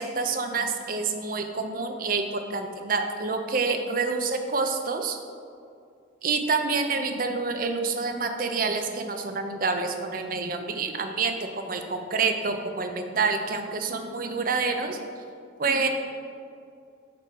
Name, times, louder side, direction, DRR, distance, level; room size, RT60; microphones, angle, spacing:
voice 1, 0.0-5.2 6.2-15.0 15.6-15.9, right 4 dB, 45° right, 5 dB, 0.6 m, -27 dB
5.9 x 4.8 x 6.1 m, 2.3 s
head